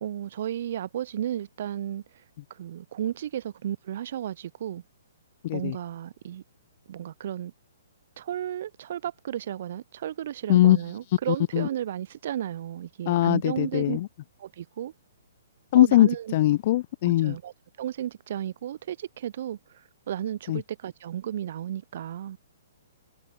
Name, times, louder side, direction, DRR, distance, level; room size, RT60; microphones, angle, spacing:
voice 1, 0.0-2.0 2.6-4.8 5.5-6.4 6.9-7.5 8.2-14.0 14.4-14.9 15.7-16.3 17.0-17.5 17.8-19.6 20.1-22.4, right 11 dB, 55° right, 0.6 m, -33 dB
voice 2, 5.4-5.7 10.5-10.8 11.3-11.7 13.1-14.1 15.7-17.4 20.5-20.6, left 15 dB, 45° left, 0.4 m, -21 dB
figure-of-eight pair, 125°, 0 cm